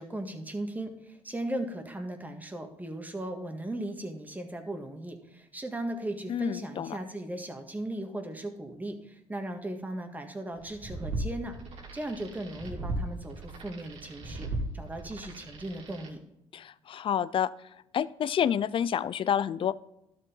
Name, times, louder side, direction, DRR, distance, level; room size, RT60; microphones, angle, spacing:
voice 1, 0.0-11.6 11.9-14.5 14.7-16.2, right 1 dB, 15° right, 5 dB, 1.7 m, -37 dB
voice 2, 6.3-7.0 16.5-17.5 17.9-19.8, left 9 dB, 45° left, 18 dB, 0.5 m, -28 dB
sound 1, 10.6-16.1, right 2 dB, 60° right, 2.6 m, -37 dB
12.0 x 7.2 x 3.8 m, 0.85 s
supercardioid pair, 85°, 12 cm